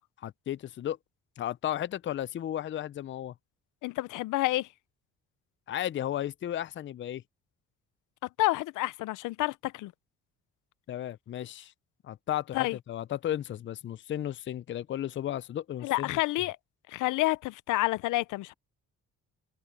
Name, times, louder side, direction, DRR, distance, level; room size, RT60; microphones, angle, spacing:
voice 1, 0.2-1.0 1.4-3.3 5.7-7.2 10.9-11.7 12.0-16.2, left 11 dB, 40° left, 0.5 m, -34 dB
voice 2, 3.8-4.7 8.4-9.9 12.5-12.8 15.8-16.6 16.9-18.5, left 19 dB, 90° left, 0.6 m, -29 dB
cardioid pair, 90°, 30 cm